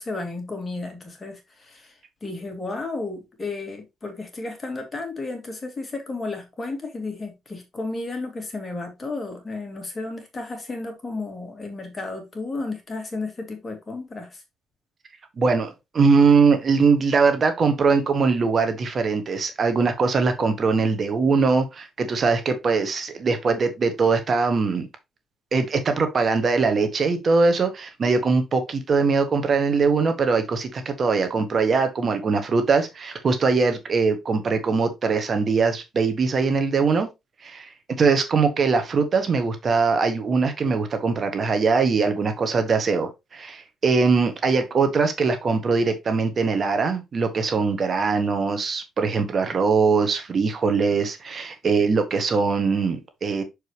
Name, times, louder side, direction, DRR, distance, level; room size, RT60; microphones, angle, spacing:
voice 1, 0.0-1.9 2.2-14.4, left 3 dB, 30° left, 2.6 m, -33 dB
voice 2, 15.4-24.9 25.5-37.1 37.4-37.7 38.0-53.4, right 4 dB, 45° right, 1.4 m, -21 dB
6.6 x 4.9 x 3.2 m
cardioid pair, 90°, 0 cm